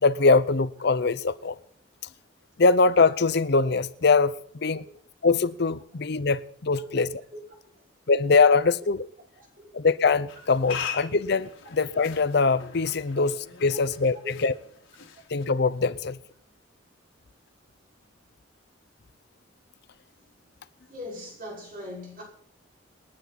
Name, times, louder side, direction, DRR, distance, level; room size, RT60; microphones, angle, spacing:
voice 1, 0.0-1.6 2.6-4.8 5.2-7.1 8.1-9.1 9.7-14.5 15.3-16.2, left 4 dB, 55° left, 0.7 m, -22 dB
voice 2, 9.4-9.7 13.8-13.9 14.2-14.5 20.9-22.2, left 1 dB, 45° right, 5.7 m, -40 dB
sound 1, 10.3-15.9, left 7 dB, 85° left, 3.4 m, -40 dB
28.0 x 9.6 x 4.2 m
head